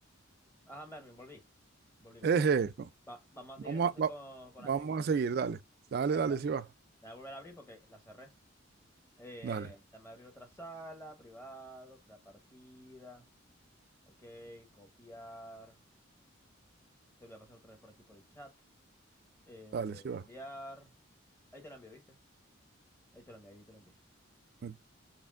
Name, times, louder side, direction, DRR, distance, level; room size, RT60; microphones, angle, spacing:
voice 1, 0.6-1.4 2.0-2.4 3.1-5.1 6.1-6.4 7.0-8.3 9.2-13.3 14.1-15.8 17.2-18.5 19.5-20.9 21.5-22.2 23.1-24.0, equal, 10° left, 0.9 m, -50 dB
voice 2, 2.2-2.9 3.7-4.1 4.6-5.6 5.9-6.6 9.4-9.7 19.7-20.2 24.6-24.8, right 6 dB, 50° right, 0.3 m, -30 dB
4.2 x 3.3 x 2.4 m
head